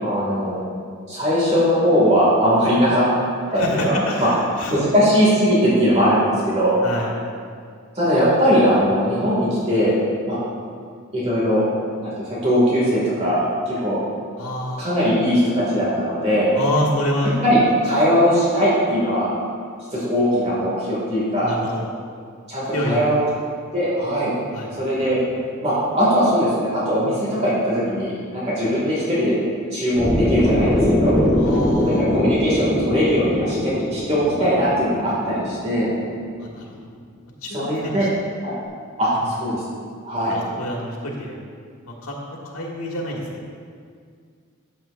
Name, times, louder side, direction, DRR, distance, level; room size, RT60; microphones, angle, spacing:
voice 1, 0.0-0.6 1.1-3.0 3.5-4.3 4.7-6.8 7.9-10.0 10.3-10.4 11.1-11.6 12.0-14.0 14.8-16.5 17.4-19.3 19.9-21.5 22.5-23.2 23.7-24.3 24.7-25.2 25.6-29.4 29.7-31.2 31.8-35.9 37.5-38.1 38.4-38.5 39.0-39.6 40.1-40.4, equal, 30° right, -8 dB, 2.3 m, -20 dB
voice 2, 3.6-4.8 6.8-7.2 14.4-15.0 16.5-17.4 21.4-21.9 22.7-23.3 24.5-24.7 31.3-32.1 36.4-36.8 37.4-38.1 40.3-41.4 41.9-42.2 42.4-43.3, left 1 dB, 85° left, -2 dB, 1.8 m, -27 dB
sound 1, 30.0-36.1, left 1 dB, ahead, 1.4 m, -22 dB
13.5 x 7.6 x 2.6 m, 2.1 s
head